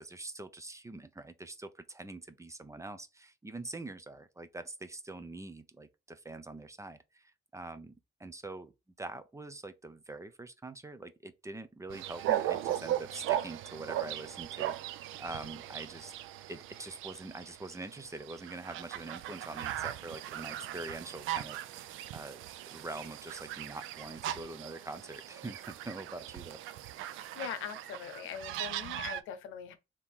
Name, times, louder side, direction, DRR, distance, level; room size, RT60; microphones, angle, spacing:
voice 1, 0.0-16.1 16.5-22.4 22.7-26.6, right 2 dB, 15° right, 0.6 m, -44 dB
sound 1, 11.9-29.2, right 12 dB, 85° right, 0.4 m, -38 dB
voice 2, 27.2-29.8, left 8 dB, 90° left, 0.8 m, -42 dB
3.5 x 2.9 x 4.3 m
cardioid pair, 90°, 20 cm